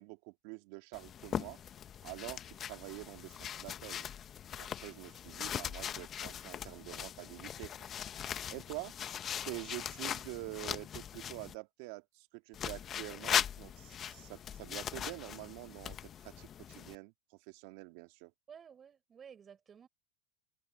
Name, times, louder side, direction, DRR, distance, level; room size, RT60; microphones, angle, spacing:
voice 1, 0.0-1.6 2.0-4.1 4.6-7.7 8.2-8.9 9.5-16.0 16.2-17.1 17.5-18.3, right 27 dB, 60° right, 2.6 m, -46 dB
sound 1, 0.9-11.5 12.5-17.0, left 9 dB, 35° left, 1.1 m, -40 dB
voice 2, 18.5-19.9, right 7 dB, 30° right, 6.2 m, -54 dB
hypercardioid pair, 100°, 0 cm